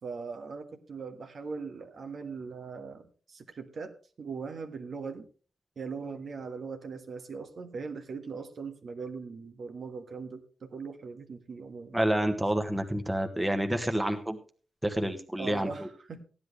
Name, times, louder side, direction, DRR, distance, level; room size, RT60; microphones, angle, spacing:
voice 1, 0.0-5.3 5.7-12.0 15.4-16.2, right 5 dB, 55° right, 6 dB, 1.5 m, -40 dB
voice 2, 11.9-14.4 14.8-15.7, right 1 dB, 10° right, 5 dB, 1.4 m, -28 dB
15.5 x 10.5 x 3.3 m, 0.37 s
cardioid pair, 105°, 0 cm